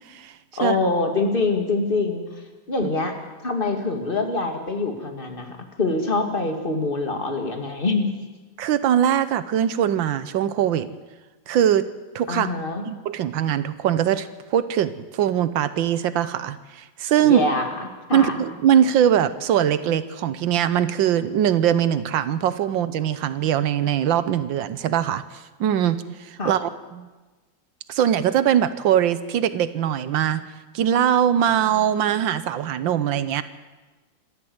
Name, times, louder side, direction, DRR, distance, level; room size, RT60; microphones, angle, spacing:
voice 1, 0.6-2.2 2.7-3.1 3.4-8.1 12.3-12.8 17.2-17.7 18.1-18.4 26.4-26.5, left 3 dB, 25° left, 4 dB, 2.5 m, -24 dB
voice 2, 8.6-10.9 11.5-11.9 12.1-12.5 12.9-17.4 18.1-27.1 27.9-30.4 30.7-33.4, right 10 dB, 80° right, 14 dB, 1.6 m, -21 dB
26.5 x 13.0 x 8.0 m, 1.2 s
omnidirectional pair, 2.1 m